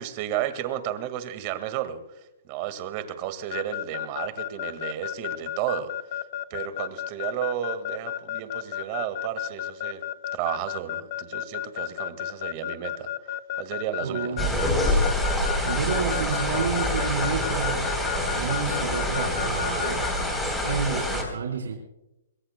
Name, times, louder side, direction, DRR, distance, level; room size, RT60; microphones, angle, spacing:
voice 1, 0.0-5.9 6.5-10.0 10.3-14.5, right 11 dB, 30° right, 11 dB, 1.7 m, -33 dB
Keyboard (musical) / Alarm, 3.5-20.1, left 12 dB, 35° left, 0.9 m, -32 dB
voice 2, 14.0-15.1 15.7-17.9 18.3-20.0 20.6-21.7, right 5 dB, 90° right, 1 dB, 4.1 m, -30 dB
sound 1, 14.4-21.2, left 1 dB, 5° left, 3.7 m, -26 dB
26.5 x 21.0 x 2.2 m, 0.90 s
hypercardioid pair, 170°, 0 cm